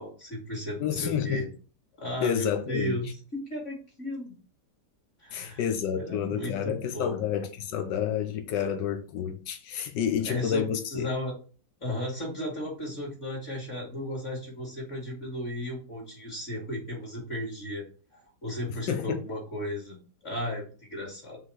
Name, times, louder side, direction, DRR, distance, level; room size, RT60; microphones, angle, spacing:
voice 1, 0.0-1.5 2.0-4.3 5.2-5.6 6.0-7.2 10.2-10.6 10.9-11.4 11.8-17.8 18.1-21.4, left 1 dB, 40° left, 3.0 m, -35 dB
voice 2, 0.8-1.4 2.2-3.0 5.3-11.1 18.7-19.2, left 8 dB, 90° left, 1.5 m, -29 dB
5.7 x 3.8 x 5.7 m
omnidirectional pair, 1.9 m